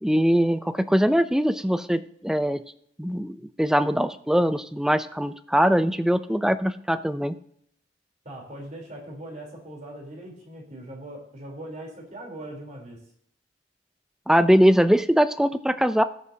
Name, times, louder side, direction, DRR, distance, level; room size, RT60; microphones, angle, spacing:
voice 1, 0.0-2.6 3.0-7.4 14.3-16.0, equal, 5° right, 12 dB, 0.4 m, -22 dB
voice 2, 8.2-13.0, right 1 dB, 45° right, -1 dB, 3.7 m, -40 dB
18.5 x 6.9 x 2.8 m, 0.69 s
head